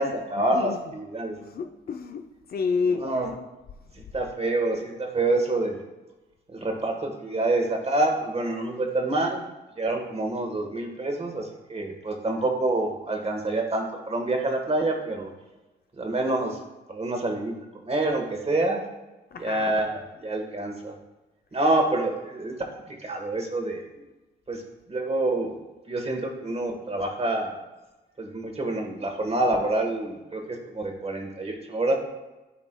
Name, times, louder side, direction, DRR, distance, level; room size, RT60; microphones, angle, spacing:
voice 1, 0.0-1.4 2.9-3.3 4.1-5.8 6.5-9.4 9.8-15.3 16.0-16.6 16.9-17.5 17.8-18.8 19.4-20.9 21.5-23.8 24.5-24.6 24.9-25.5 25.9-27.6 28.2-32.0, right 2 dB, 35° right, 3 dB, 1.3 m, -27 dB
voice 2, 1.4-2.2 2.5-3.0 19.3-19.7, left 5 dB, 55° left, 7 dB, 0.5 m, -28 dB
11.5 x 4.0 x 2.2 m, 1.1 s
cardioid pair, 60°, 19 cm